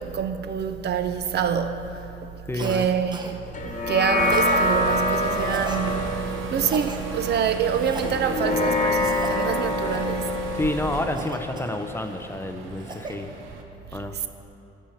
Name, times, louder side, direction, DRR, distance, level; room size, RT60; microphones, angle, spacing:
voice 1, 0.0-2.3 2.6-6.0 6.2-10.2, right 7 dB, 55° right, 0.5 m, -26 dB
voice 2, 2.4-2.9 10.5-13.3 13.9-14.1, left 1 dB, 10° left, 0.5 m, -29 dB
Cough, 2.5-2.9 3.1-3.4 4.2-4.6 5.3-5.8 6.6-7.0 7.7-8.2 8.9-9.5 9.9-10.2 11.1-12.1 12.6-13.2, right 2 dB, 20° right, 0.7 m, -38 dB
sound 1, 3.5-12.3, left 2 dB, 40° left, 1.1 m, -26 dB
sound 2, 4.2-13.6, right 4 dB, 85° right, 0.8 m, -34 dB
11.5 x 4.4 x 5.8 m
cardioid pair, 90°, 20 cm